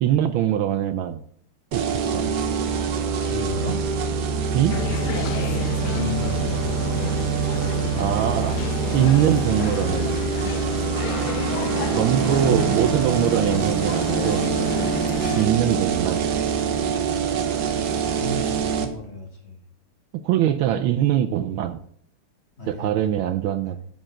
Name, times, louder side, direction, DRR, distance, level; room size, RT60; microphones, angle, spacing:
voice 1, 0.0-1.2 1.7-2.3 4.5-4.7 7.9-8.6 8.9-10.2 11.9-14.5 15.3-16.3 20.2-21.8 22.7-23.8, right 11 dB, 75° right, 9 dB, 1.3 m, -22 dB
sound 1, 1.7-18.8, right 6 dB, 55° right, 1.3 m, -25 dB
voice 2, 3.2-3.8 5.8-7.1 12.1-13.0 15.3-15.5 18.2-19.6 22.6-23.0 23.6-23.7, left 1 dB, 30° left, 0 dB, 1.8 m, -33 dB
sound 2, 4.7-15.5, left 11 dB, 80° left, 1.5 m, -31 dB
Guitar, 10.9-18.6, right 6 dB, 15° right, 1.8 m, -34 dB
7.5 x 5.3 x 7.2 m, 0.63 s
omnidirectional pair, 2.4 m